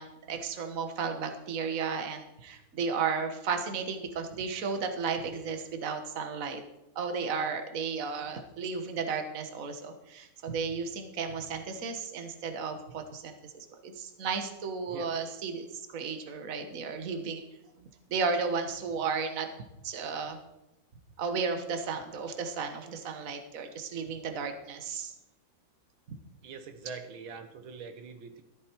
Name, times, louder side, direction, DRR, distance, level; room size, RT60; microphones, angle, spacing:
voice 1, 0.0-6.6 6.9-17.4 17.8-19.5 19.8-20.4 21.2-25.1, right 5 dB, 45° right, 6 dB, 1.7 m, -34 dB
voice 2, 26.4-28.4, right 5 dB, 80° right, 7 dB, 2.0 m, -43 dB
14.0 x 13.0 x 4.6 m, 0.91 s
omnidirectional pair, 2.1 m